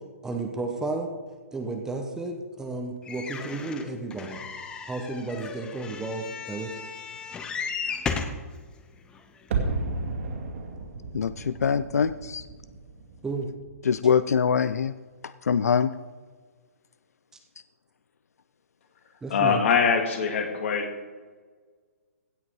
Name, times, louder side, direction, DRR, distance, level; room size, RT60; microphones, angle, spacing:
voice 1, 0.2-1.1 1.5-4.4 4.8-6.7 13.2-13.5 19.2-19.6, right 3 dB, 5° right, 4 dB, 1.0 m, -32 dB
sound 1, 3.1-8.4 9.1-9.2 9.5-9.6, left 5 dB, 10° left, 0.7 m, -35 dB
sound 2, 9.5-14.4 14.7-14.8, right 3 dB, 55° right, 2.4 m, -34 dB
voice 2, 11.1-12.5 13.8-14.9 15.2-15.9, left 6 dB, 90° left, 14 dB, 0.5 m, -24 dB
voice 3, 19.3-20.9, left 6 dB, 55° left, 4 dB, 2.4 m, -23 dB
16.5 x 8.0 x 4.8 m, 1.5 s
hypercardioid pair, 155°, 8 cm